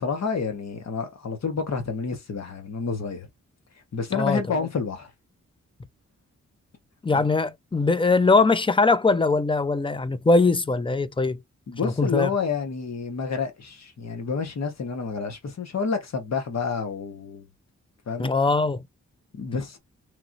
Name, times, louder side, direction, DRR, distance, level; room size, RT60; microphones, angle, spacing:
voice 1, 0.0-3.3 3.9-5.1 7.1-7.2 11.7-17.4 18.1-18.3 19.3-19.8, left 5 dB, 65° left, 1.2 m, -29 dB
voice 2, 7.0-11.4 11.8-12.3 18.2-18.8, left 3 dB, 15° left, 0.5 m, -21 dB
3.1 x 2.7 x 2.5 m
cardioid pair, 60°, 29 cm